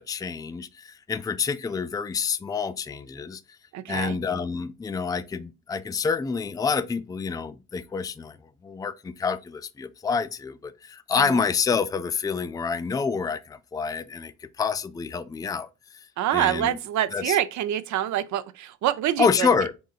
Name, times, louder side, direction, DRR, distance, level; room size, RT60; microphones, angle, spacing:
voice 1, 0.0-3.4 3.9-8.4 8.6-15.7 16.3-16.8 17.1-17.4 19.2-19.7, left 5 dB, 15° left, 0.3 m, -27 dB
voice 2, 3.7-4.2 11.2-11.4 16.2-19.5, right 12 dB, 70° right, 0.5 m, -26 dB
3.8 x 3.8 x 2.3 m
cardioid pair, 90°, 30 cm